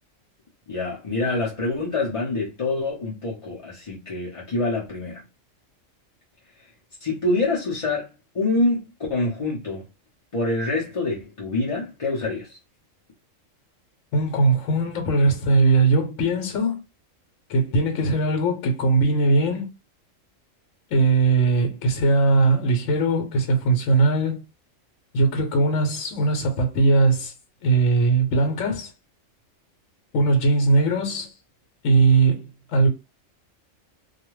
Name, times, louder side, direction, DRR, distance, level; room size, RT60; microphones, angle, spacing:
voice 1, 0.7-5.2 7.0-9.8 10.3-12.6, left 2 dB, 35° left, 0.5 m, -26 dB
voice 2, 14.1-16.8 17.5-19.7 20.9-24.4 25.1-27.3 27.6-28.9 30.1-31.3 31.8-32.9, right 3 dB, 75° left, 1.1 m, -20 dB
2.4 x 2.2 x 3.0 m
omnidirectional pair, 1.4 m